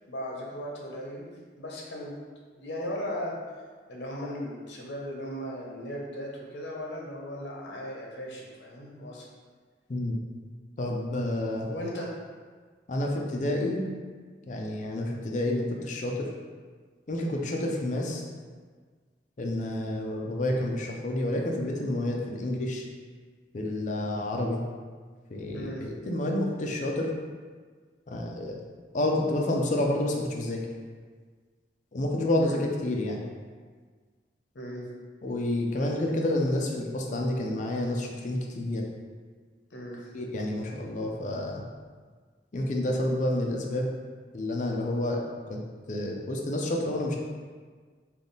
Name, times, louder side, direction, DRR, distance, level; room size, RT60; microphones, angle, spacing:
voice 1, 0.1-1.3 1.6-2.1 2.6-3.3 3.9-9.3 11.6-12.1 25.5-25.9 32.4-32.6 34.5-34.8 39.7-40.1, equal, 75° left, -2 dB, 0.7 m, -37 dB
voice 2, 10.8-11.7 12.9-13.8 14.5-16.3 17.1-18.2 19.4-22.8 23.5-24.6 25.3-27.1 28.1-28.6 28.9-30.6 31.9-33.2 35.2-38.9 40.1-41.6 42.5-43.9 44.3-45.2 45.5-45.6 45.9-47.2, left 1 dB, 45° left, 0 dB, 0.5 m, -29 dB
3.5 x 2.3 x 3.9 m, 1.5 s
head